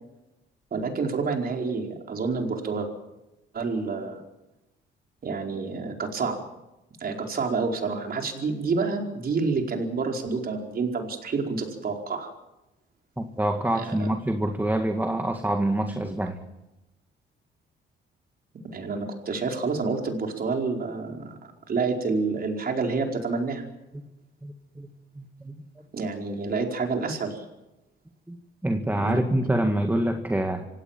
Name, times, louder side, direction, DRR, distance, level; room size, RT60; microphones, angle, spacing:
voice 1, 0.7-2.9 3.5-4.2 5.2-6.4 7.0-12.3 13.7-14.1 18.7-23.6 25.9-27.4 29.0-29.2, right 4 dB, 50° right, 3 dB, 4.7 m, -28 dB
voice 2, 13.2-16.4 24.4-24.9 25.2-25.5 28.3-28.4 28.6-30.7, right 1 dB, 10° right, 6 dB, 1.9 m, -26 dB
26.5 x 17.0 x 7.5 m, 0.95 s
cardioid pair, 90°, 20 cm